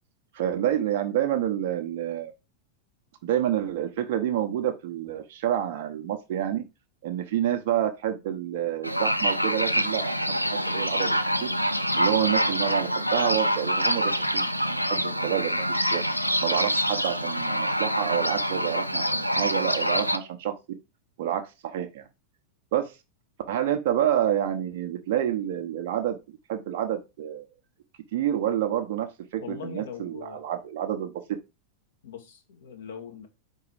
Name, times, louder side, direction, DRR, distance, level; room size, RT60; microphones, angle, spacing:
voice 1, 0.3-2.3 3.2-6.6 7.0-10.1 10.5-11.5 12.0-16.0 16.4-20.5 21.2-22.0 22.7-22.9 23.5-26.2 26.5-27.4 28.1-31.2, right 11 dB, 50° right, 1.0 m, -28 dB
sound 1, 8.8-20.2, equal, 90° right, 0.5 m, -26 dB
voice 2, 29.4-30.5 32.0-33.3, left 8 dB, 60° left, 1.5 m, -41 dB
4.8 x 4.6 x 5.0 m
figure-of-eight pair, 90°, 0 cm